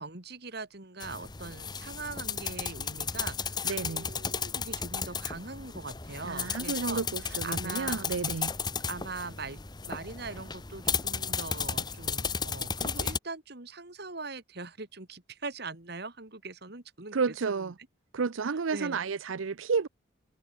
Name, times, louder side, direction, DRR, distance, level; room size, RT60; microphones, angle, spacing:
voice 1, 0.0-8.1 8.3-8.4 8.9-17.2 17.5-17.7 18.7-19.0, right 3 dB, 55° right, 2.3 m, -41 dB
sound 1, 1.0-13.2, left 6 dB, 20° left, 1.0 m, -34 dB
voice 2, 3.6-4.1 6.2-8.5 17.1-17.7 18.1-19.9, right 5 dB, 80° right, 0.6 m, -31 dB
head